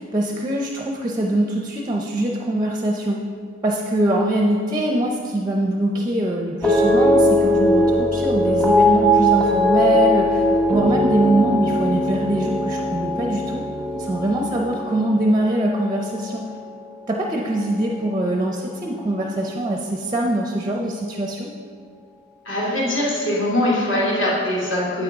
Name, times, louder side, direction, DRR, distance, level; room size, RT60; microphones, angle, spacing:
voice 1, 0.0-3.2 3.6-10.4 10.7-13.6 14.0-16.5 17.1-21.5, right 1 dB, 20° right, 0 dB, 0.5 m, -23 dB
sound 1, 6.6-17.0 17.3-17.8, left 1 dB, 5° left, 0.9 m, -20 dB
voice 2, 22.4-25.0, left 1 dB, 65° left, -7 dB, 2.5 m, -22 dB
9.0 x 8.6 x 3.5 m, 2.1 s
head